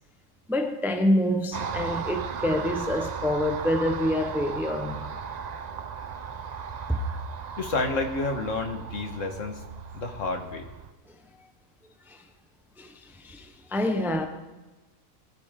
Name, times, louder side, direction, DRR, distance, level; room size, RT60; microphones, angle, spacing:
voice 1, 0.5-5.2 6.9-7.0 12.1-12.2 12.8-14.3, left 1 dB, ahead, 0.8 m, -27 dB
Car passing by, 1.5-10.9, right 6 dB, 50° right, 0.5 m, -36 dB
voice 2, 7.6-9.6 9.9-10.6, left 3 dB, 65° left, 1.8 m, -29 dB
21.0 x 10.0 x 3.7 m
omnidirectional pair, 1.4 m